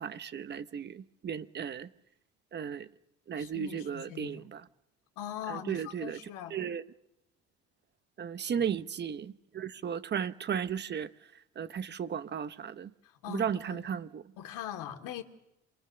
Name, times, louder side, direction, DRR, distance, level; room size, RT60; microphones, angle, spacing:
voice 1, 0.0-1.9 2.5-2.9 3.3-4.6 5.5-6.2 6.5-6.8 8.2-11.1 11.6-12.9 13.3-14.2, right 8 dB, 35° right, 0.9 m, -35 dB
voice 2, 3.4-4.5 5.2-6.6 8.4-8.7 13.2-13.8 14.4-15.2, left 10 dB, 85° left, 2.5 m, -41 dB
27.5 x 23.5 x 6.7 m
cardioid pair, 130°, 31 cm